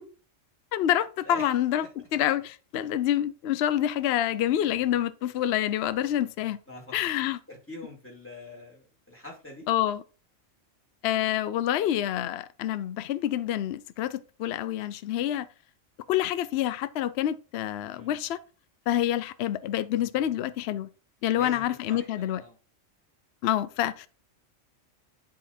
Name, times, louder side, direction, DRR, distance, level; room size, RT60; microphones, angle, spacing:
voice 1, 0.7-1.9 2.1-6.6 6.9-7.4 9.7-10.0 11.0-15.5 16.1-18.4 18.9-20.9 21.2-22.4 23.4-24.1, left 12 dB, 65° left, 0.7 m, -27 dB
voice 2, 7.5-9.7 17.9-18.2 21.2-22.6, left 2 dB, 10° left, 2.8 m, -44 dB
10.5 x 3.9 x 4.2 m
omnidirectional pair, 1.4 m